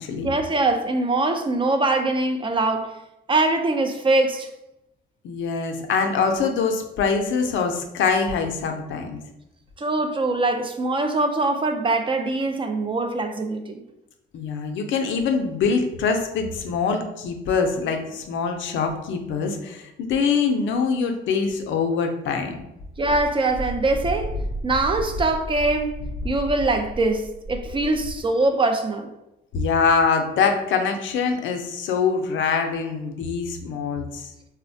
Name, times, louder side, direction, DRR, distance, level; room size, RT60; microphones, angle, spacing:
voice 1, 0.1-2.9 3.3-4.5 9.8-13.8 23.0-24.4 24.6-26.0 26.2-29.1, right 2 dB, 25° right, 0.4 m, -23 dB
voice 2, 5.2-9.2 14.3-22.6 29.5-34.3, left 5 dB, 75° left, 0.5 m, -24 dB
Wind, 22.9-28.2, left 1 dB, 75° right, 0.7 m, -32 dB
3.8 x 2.1 x 2.6 m
cardioid pair, 90°, 20 cm